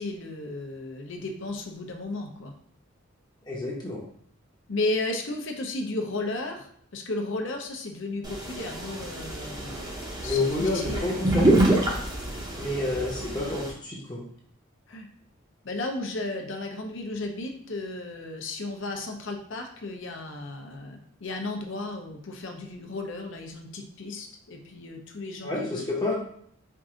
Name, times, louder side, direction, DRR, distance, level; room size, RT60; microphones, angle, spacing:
voice 1, 0.0-2.5 4.7-9.8 10.2-11.1 14.9-15.1 15.6-25.9, left 2 dB, 60° left, 3 dB, 0.7 m, -34 dB
voice 2, 3.4-4.0 10.2-11.5 12.6-14.2 25.4-26.1, left 2 dB, 20° left, -4 dB, 0.8 m, -29 dB
sound 1, 8.2-13.7, right 1 dB, 20° right, 0.7 m, -27 dB
4.6 x 2.6 x 3.7 m, 0.65 s
head